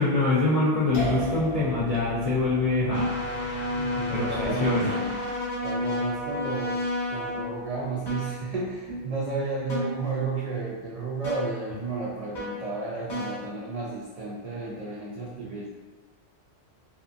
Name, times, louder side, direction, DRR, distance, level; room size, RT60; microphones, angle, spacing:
voice 1, 0.0-3.7 4.1-5.0, left 2 dB, 60° left, -8 dB, 0.4 m, -25 dB
sound 1, 0.9-7.9, equal, 80° left, 0.9 m, -38 dB
sound 2, 2.9-7.8 8.1-8.4 8.9-9.1 9.7-10.1 11.2-11.5 12.3-12.7 13.1-13.4, left 1 dB, 25° left, 0.8 m, -31 dB
voice 2, 3.8-5.0 5.6-6.8 7.1-15.7, right 3 dB, 80° right, -5 dB, 0.3 m, -32 dB
2.7 x 2.4 x 2.4 m, 1.3 s
omnidirectional pair, 1.2 m